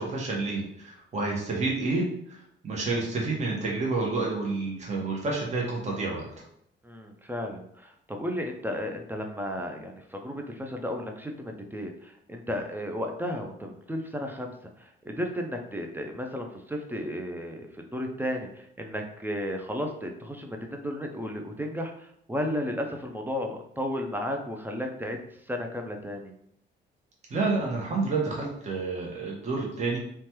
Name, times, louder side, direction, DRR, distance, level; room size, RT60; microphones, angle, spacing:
voice 1, 0.0-6.2 27.3-30.0, right 3 dB, 35° right, -2 dB, 0.8 m, -29 dB
voice 2, 6.8-25.2 25.5-26.3, equal, 10° right, 3 dB, 0.4 m, -34 dB
3.1 x 2.2 x 2.9 m, 0.71 s
cardioid pair, 90°, 20 cm